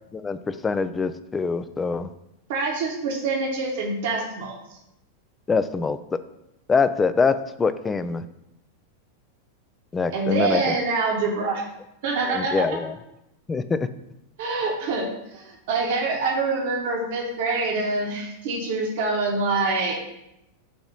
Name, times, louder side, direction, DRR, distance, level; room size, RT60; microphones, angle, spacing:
voice 1, 0.1-2.1 5.5-6.2 6.7-8.2 9.9-10.7 12.3-12.9 13.5-13.9, left 4 dB, 15° left, 13 dB, 0.3 m, -24 dB
voice 2, 2.5-4.6 10.1-11.6 12.0-12.5 14.4-19.9, right 3 dB, 50° right, 0 dB, 1.2 m, -25 dB
6.2 x 3.0 x 5.3 m, 0.85 s
figure-of-eight pair, 90°, 0 cm